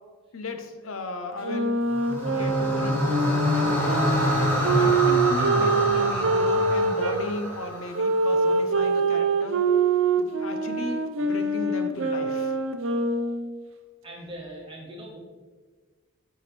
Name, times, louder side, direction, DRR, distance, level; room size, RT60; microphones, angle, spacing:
voice 1, 0.3-1.7 2.2-4.2 4.7-9.6 10.2-12.5, left 2 dB, 85° left, 6 dB, 0.7 m, -35 dB
sound 1, 1.4-7.2 7.9-13.6, right 3 dB, 70° right, 0.6 m, -25 dB
sound 2, 1.9-8.2, equal, 10° left, 1.1 m, -26 dB
voice 2, 14.0-15.2, right 1 dB, 25° right, -3 dB, 1.5 m, -40 dB
8.5 x 4.7 x 3.4 m, 1.4 s
head